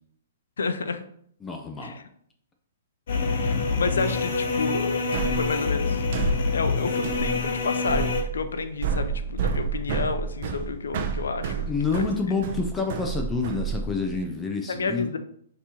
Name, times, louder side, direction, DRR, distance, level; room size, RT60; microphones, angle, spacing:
voice 1, 0.6-1.0 1.8-2.0 3.4-5.0 5.3-6.1 6.5-12.0 14.7-15.2, left 4 dB, 85° left, 9 dB, 0.4 m, -30 dB
voice 2, 1.4-2.0 11.7-15.2, left 4 dB, 15° left, 2 dB, 0.6 m, -28 dB
sound 1, 3.1-8.2, left 4 dB, 65° left, 0.9 m, -26 dB
sound 2, 5.1-14.2, right 6 dB, 55° right, 0.5 m, -30 dB
5.8 x 2.9 x 2.9 m, 0.66 s
hypercardioid pair, 140°, 0 cm